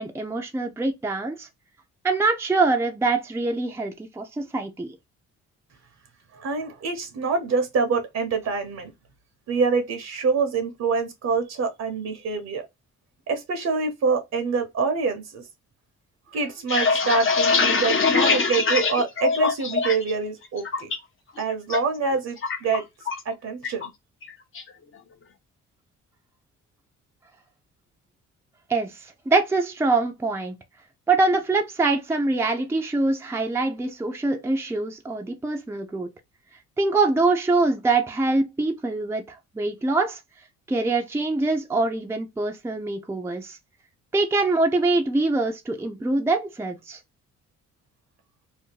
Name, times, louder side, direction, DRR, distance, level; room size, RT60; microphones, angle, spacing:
voice 1, 0.0-1.5 2.0-5.0 28.7-30.6 31.1-36.1 36.8-40.2 40.7-43.6 44.1-47.0, right 3 dB, 10° right, 0.5 m, -24 dB
voice 2, 6.3-8.9 9.5-12.7 13.3-15.4 16.3-20.9 21.4-22.9 23.2-23.9, right 4 dB, 60° right, 0.9 m, -26 dB
sound 1, 16.4-20.1 20.4-21.0 21.4-21.8 22.0-23.3 23.6-23.9 24.2-24.7, left 4 dB, 45° left, 0.8 m, -23 dB
2.8 x 2.1 x 3.7 m
cardioid pair, 90°, 30 cm